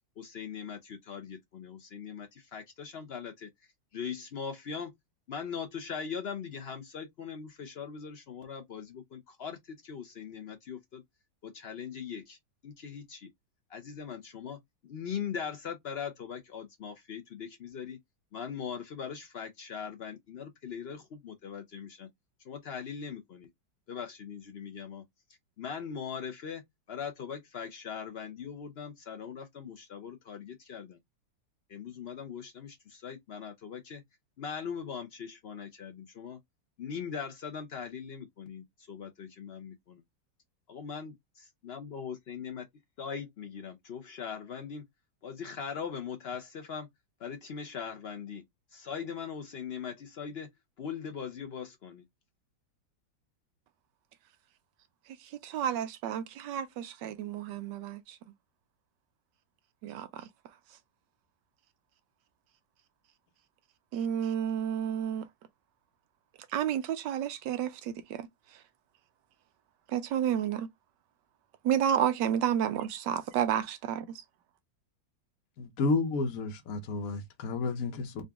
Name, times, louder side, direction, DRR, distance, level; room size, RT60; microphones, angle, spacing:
voice 1, 0.2-3.5 3.9-4.9 5.3-11.0 11.4-12.4 12.6-13.3 13.7-18.0 18.3-22.1 22.4-23.5 23.9-25.0 25.6-26.6 26.9-31.0 31.7-34.0 34.4-36.4 36.8-40.0 40.7-42.7 43.0-44.9 45.2-46.9 47.2-48.4 48.7-50.5 50.8-52.0, left 7 dB, 85° left, 0.5 m, -40 dB
voice 2, 55.2-58.2 59.8-60.3 63.9-65.3 66.5-68.3 69.9-70.7 71.6-74.0, right 9 dB, 75° right, 1.2 m, -31 dB
voice 3, 75.6-78.2, left 3 dB, 60° left, 1.1 m, -31 dB
3.9 x 2.5 x 3.4 m
omnidirectional pair, 2.0 m